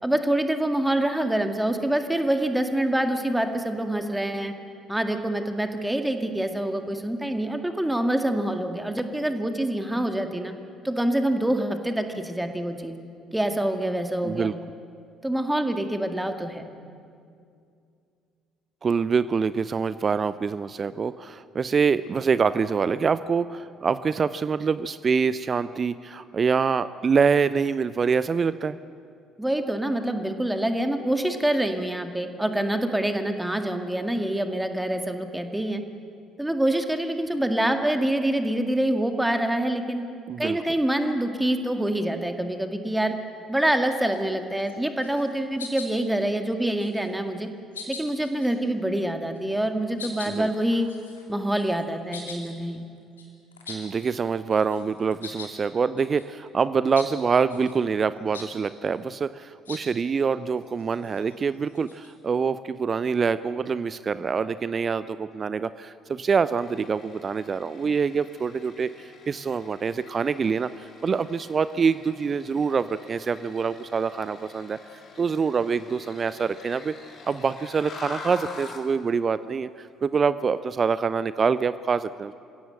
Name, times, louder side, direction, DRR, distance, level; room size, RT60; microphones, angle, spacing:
voice 1, 0.0-4.5 4.9-10.5 10.8-13.0 13.3-14.5 15.2-16.6 29.4-35.8 36.4-40.0 40.4-43.1 43.5-47.5 47.9-50.9 51.3-52.8, right 1 dB, 5° right, 6 dB, 2.0 m, -26 dB
voice 2, 18.8-28.8 40.3-40.6 50.3-50.5 53.7-74.8 75.2-76.9 77.3-82.3, right 5 dB, 35° right, 15 dB, 0.6 m, -25 dB
sound 1, 43.8-44.2 44.6-44.8 45.0-45.3 45.6-46.2 46.6-47.2 47.7-48.6 49.4-49.5 50.0-54.2 54.5-55.5 56.0-56.3 56.9-57.1 57.5-57.8 58.3-58.5 59.7-59.9 60.6-62.1, left 4 dB, 80° left, 2.9 m, -42 dB
sound 2, 66.6-78.9, left 4 dB, 45° left, 3.6 m, -45 dB
26.0 x 16.5 x 7.8 m, 2.4 s
figure-of-eight pair, 50°, 0 cm